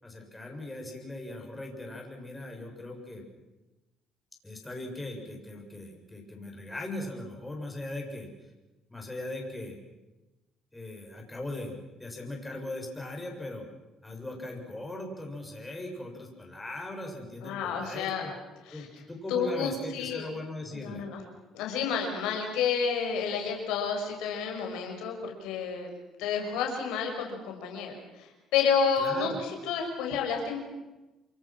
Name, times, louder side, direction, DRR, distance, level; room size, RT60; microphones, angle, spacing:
voice 1, 0.0-3.2 4.4-8.3 8.9-9.8 10.7-13.6 14.0-18.3 18.7-21.1 29.0-29.4, left 1 dB, 10° left, 1 dB, 7.3 m, -39 dB
voice 2, 17.4-18.3 18.7-18.9 19.3-20.3 20.7-21.2 21.5-25.9 26.2-30.6, left 6 dB, 90° left, 2 dB, 6.1 m, -30 dB
29.0 x 24.0 x 6.3 m, 1.0 s
cardioid pair, 100°, 0 cm